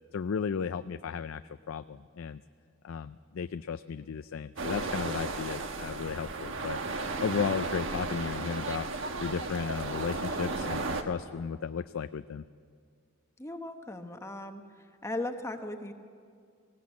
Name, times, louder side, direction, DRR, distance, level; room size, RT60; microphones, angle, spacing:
voice 1, 0.1-1.4 1.7-2.4 2.8-6.8 7.2-8.9 9.2-12.4, left 6 dB, 75° left, 11 dB, 0.4 m, -34 dB
sound 1, 4.6-11.0, right 3 dB, 70° right, 1.3 m, -34 dB
voice 2, 13.4-14.6 15.0-15.9, left 2 dB, 15° left, 6 dB, 0.9 m, -37 dB
19.5 x 16.5 x 8.5 m, 2.2 s
head